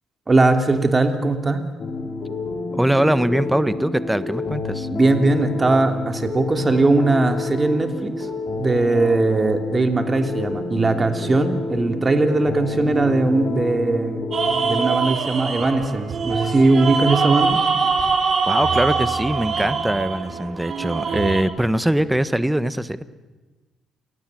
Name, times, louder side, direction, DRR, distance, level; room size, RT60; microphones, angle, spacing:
voice 1, 0.3-1.6 4.9-8.3 8.6-14.2 14.6-17.6, right 2 dB, 25° right, 7 dB, 3.0 m, -19 dB
sound 1, 1.8-14.8, left 3 dB, 50° left, 6.2 m, -29 dB
voice 2, 2.7-4.9 18.5-23.0, right 1 dB, 5° right, 14 dB, 1.2 m, -22 dB
sound 2, 14.3-21.4, right 5 dB, 50° right, 3.7 m, -23 dB
28.5 x 18.0 x 9.3 m, 1.2 s
cardioid pair, 90°, 0 cm